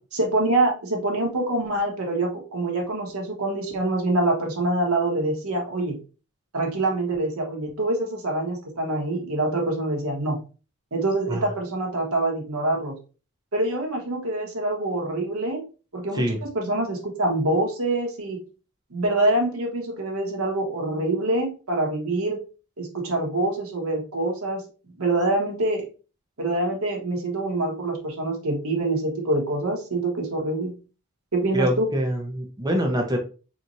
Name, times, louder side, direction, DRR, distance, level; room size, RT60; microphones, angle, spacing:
voice 1, 0.1-6.0 6.5-10.4 10.9-12.9 13.5-15.6 15.9-18.4 18.9-22.4 22.8-24.6 25.0-25.9 26.4-30.7 31.3-31.9, right 2 dB, 80° right, 0 dB, 1.2 m, -25 dB
voice 2, 31.5-33.2, equal, 20° right, 2 dB, 0.8 m, -25 dB
4.2 x 3.1 x 2.6 m, 0.34 s
head